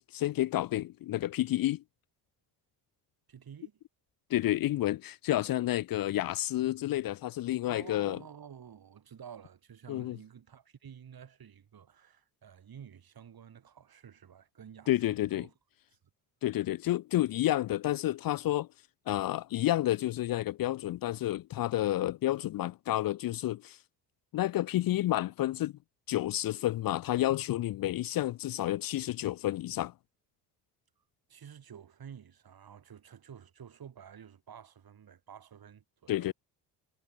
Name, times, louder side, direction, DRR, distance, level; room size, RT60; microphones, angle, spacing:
voice 1, 0.0-1.8 4.3-8.2 9.9-10.2 14.9-15.4 16.4-18.7 19.1-23.8 24.3-25.7 26.1-29.9 36.1-36.3, left 14 dB, 55° left, 0.5 m, -30 dB
voice 2, 3.3-3.8 7.7-15.5 15.9-16.0 31.0-31.1 31.3-36.3, right 8 dB, 55° right, 4.7 m, -51 dB
supercardioid pair, 70°, 44 cm